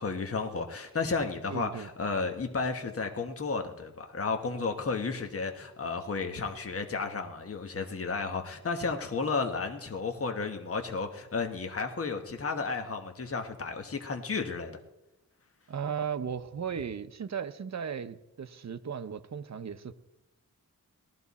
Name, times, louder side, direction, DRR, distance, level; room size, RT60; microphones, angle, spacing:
voice 1, 0.0-14.8, left 4 dB, 45° left, 5 dB, 1.3 m, -33 dB
voice 2, 1.5-1.9 15.7-19.9, right 7 dB, 55° right, 11 dB, 0.8 m, -36 dB
19.0 x 13.0 x 4.2 m, 0.97 s
wide cardioid pair, 130°, 34 cm